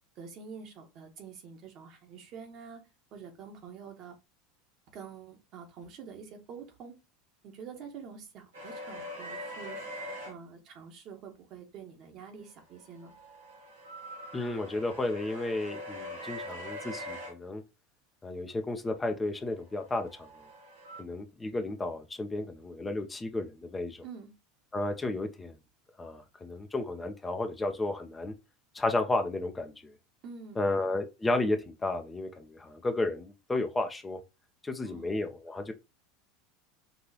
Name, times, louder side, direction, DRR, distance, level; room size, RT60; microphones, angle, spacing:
voice 1, 0.1-2.8 3.1-4.2 4.9-7.0 7.4-9.9 10.2-13.1 24.0-24.3 30.2-30.6 34.8-35.1, right 6 dB, 50° right, 1.4 m, -47 dB
sound 1, 8.5-10.3 12.7-17.3 19.7-21.0, equal, 80° right, 2.0 m, -42 dB
voice 2, 14.3-17.6 18.2-20.3 21.0-24.0 24.7-25.5 26.0-28.3 28.7-29.9 30.6-34.2 34.6-35.7, left 2 dB, 15° left, 0.7 m, -32 dB
5.4 x 2.9 x 2.8 m
hypercardioid pair, 80°, 0 cm